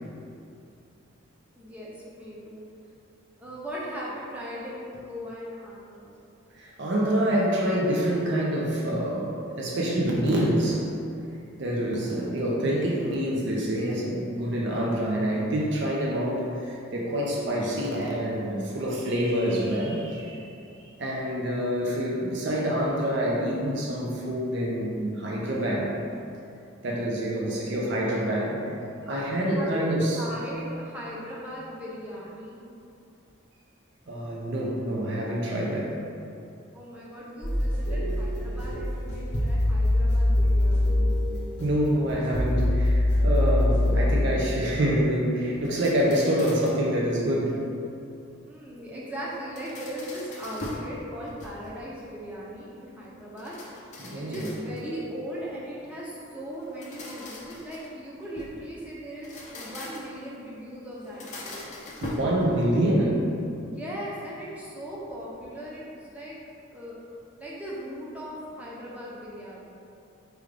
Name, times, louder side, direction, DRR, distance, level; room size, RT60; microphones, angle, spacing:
voice 1, 1.6-2.6 3.4-6.1 27.4-27.9 29.0-29.9 30.1-32.6 36.7-41.1 48.4-53.5 54.1-61.6 63.6-66.4 66.7-67.0 67.4-69.6, equal, 5° right, -7 dB, 0.6 m, -38 dB
voice 2, 6.5-10.8 11.6-20.4 20.7-25.9 26.8-28.6 29.1-30.2 34.1-36.0 41.6-47.6 54.0-54.5 62.0-63.2, equal, 55° right, -3 dB, 0.5 m, -26 dB
sound 1, 37.4-44.1, left 1 dB, 55° left, 0.9 m, -24 dB
sound 2, 45.6-46.9 49.3-50.9 51.3-51.9 53.4-55.0 56.6-58.6 59.1-60.2 61.0-62.9, left 1 dB, 35° left, 0.5 m, -41 dB
4.7 x 2.4 x 3.3 m, 2.6 s
head